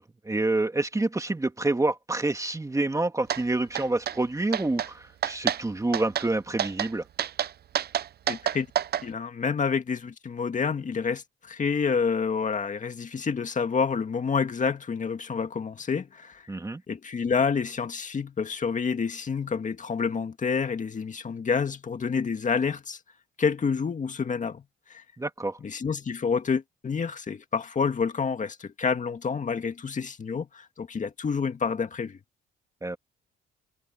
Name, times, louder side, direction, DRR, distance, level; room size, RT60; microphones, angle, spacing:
voice 1, 0.0-7.1 16.5-16.8 25.2-25.6 32.8-33.0, right 2 dB, 15° right, 1.9 m, -28 dB
sound 1, 3.3-3.4 3.8-4.2 4.5-4.9 5.2-5.6 5.9-6.3 6.6-6.9 7.2-9.0, right 10 dB, 55° right, 0.7 m, -28 dB
voice 2, 8.3-8.7 9.0-16.4 16.9-23.0 23.4-24.6 24.9-25.0 25.6-32.2, left 5 dB, 40° left, 2.0 m, -28 dB
cardioid pair, 90°, 20 cm